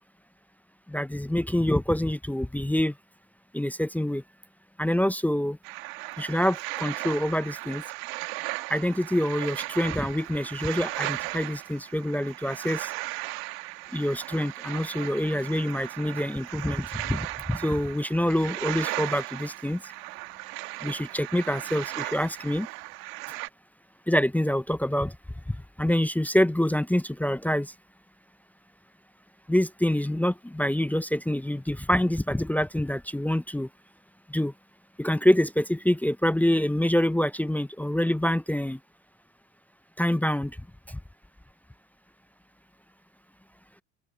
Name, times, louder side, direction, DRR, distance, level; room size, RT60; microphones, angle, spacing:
voice 1, 0.9-2.9 3.5-4.2 4.8-5.6 6.2-7.8 8.7-12.9 13.9-19.8 20.9-22.7 24.1-25.1 25.8-27.7 29.5-33.7 34.3-34.5 35.0-38.8 40.0-40.5, left 1 dB, 5° left, 0.8 m, -26 dB
sound 1, 5.6-23.5, right 26 dB, 65° right, 1.6 m, -36 dB
open air
hypercardioid pair, 70°, 39 cm